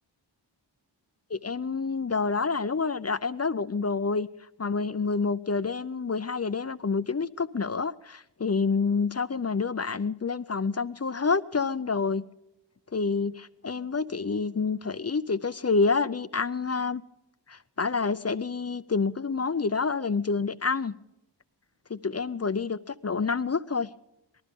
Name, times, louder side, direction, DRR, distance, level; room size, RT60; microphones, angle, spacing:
voice 1, 1.3-4.3 4.6-12.2 12.9-17.0 17.5-20.9 21.9-23.9, left 4 dB, 35° left, 0.5 m, -28 dB
19.5 x 13.5 x 5.3 m
wide cardioid pair, 55°, 44 cm